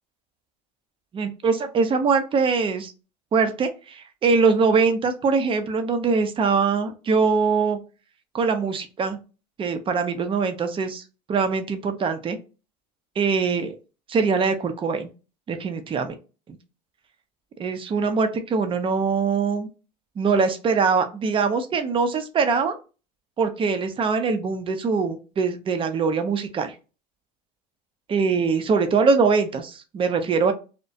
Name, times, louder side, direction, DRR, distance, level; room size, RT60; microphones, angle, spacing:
voice 1, 1.1-2.9 3.3-7.8 8.3-9.2 9.6-11.0 11.3-12.4 13.2-13.7 14.1-15.1 15.5-16.1 16.5-16.6 17.6-19.7 20.2-22.8 23.4-26.7 28.1-30.5, right 5 dB, 25° right, 8 dB, 0.5 m, -22 dB
2.3 x 2.1 x 2.7 m, 0.32 s
hypercardioid pair, 95°, 21 cm